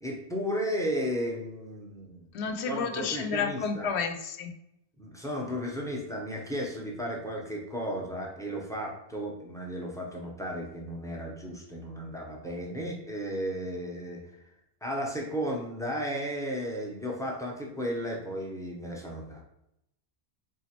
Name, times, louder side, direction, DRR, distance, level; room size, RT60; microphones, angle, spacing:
voice 1, 0.0-2.2 2.7-3.9 5.0-14.2 14.8-19.4, equal, 5° left, -1 dB, 0.6 m, -34 dB
voice 2, 2.3-4.5, left 6 dB, 85° left, 6 dB, 0.9 m, -31 dB
4.1 x 3.6 x 2.9 m, 0.84 s
omnidirectional pair, 1.1 m